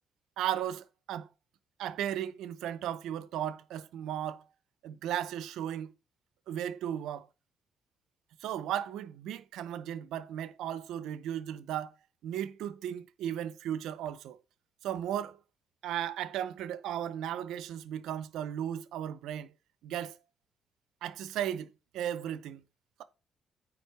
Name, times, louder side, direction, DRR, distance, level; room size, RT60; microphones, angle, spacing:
voice 1, 0.4-1.3 1.8-4.4 4.8-5.9 6.5-7.3 8.4-11.9 12.2-14.4 14.8-15.4 15.8-19.5 19.8-20.2 21.0-22.6, right 10 dB, 85° right, 0.7 m, -35 dB
9.2 x 3.7 x 5.9 m
cardioid pair, 90°, 0 cm